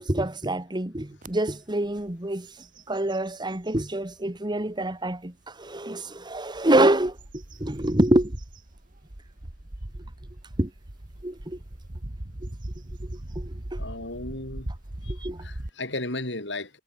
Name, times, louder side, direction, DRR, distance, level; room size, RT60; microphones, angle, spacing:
voice 1, 0.0-2.5 2.9-7.2 7.6-8.4 10.6-10.7 11.2-11.6 13.4-13.8 15.2-15.4, right 1 dB, 25° right, 1.9 m, -26 dB
sound 1, 1.2-1.3 1.8-2.1 2.4-3.9 4.5-4.6 6.3-15.7, right 1 dB, 45° right, 1.7 m, -39 dB
voice 2, 13.8-14.7 15.0-16.7, left 2 dB, 70° left, 8.0 m, -35 dB
head